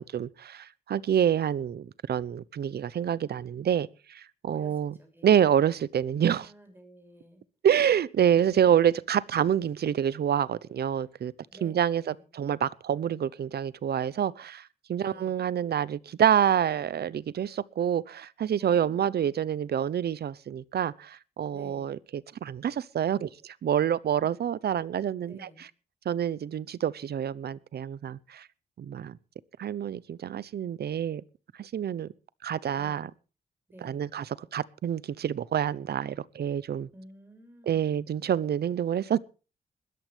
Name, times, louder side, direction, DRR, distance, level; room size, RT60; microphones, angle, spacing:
voice 1, 0.0-4.9 5.2-6.5 7.6-11.3 11.6-25.4 26.0-28.5 28.8-29.2 29.6-31.2 31.6-32.1 32.4-33.1 33.8-34.2 34.5-36.9 37.7-39.2, right 9 dB, 75° right, 0.8 m, -27 dB
voice 2, 4.4-5.4 6.2-7.4 8.3-8.8 11.5-12.3 15.0-15.4 18.6-19.2 21.5-21.9 25.2-25.7 32.8-33.1 33.7-34.0 36.9-38.1, right 1 dB, 10° right, 6.1 m, -51 dB
21.0 x 13.5 x 3.4 m
wide cardioid pair, 130°, 17 cm